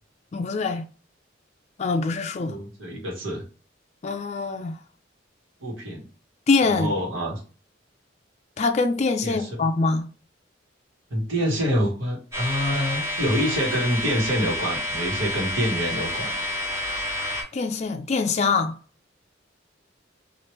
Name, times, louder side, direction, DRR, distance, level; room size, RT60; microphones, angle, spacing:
voice 1, 0.3-0.8 1.8-2.6 4.0-4.8 6.5-6.9 8.6-10.1 17.5-18.8, left 4 dB, 35° left, 0.3 m, -24 dB
voice 2, 2.4-3.4 5.6-6.1 6.6-7.4 9.2-9.6 11.1-16.4, equal, 85° right, 1.3 m, -26 dB
sound 1, 12.3-17.4, left 1 dB, 15° right, 1.4 m, -29 dB
3.1 x 2.5 x 3.0 m
head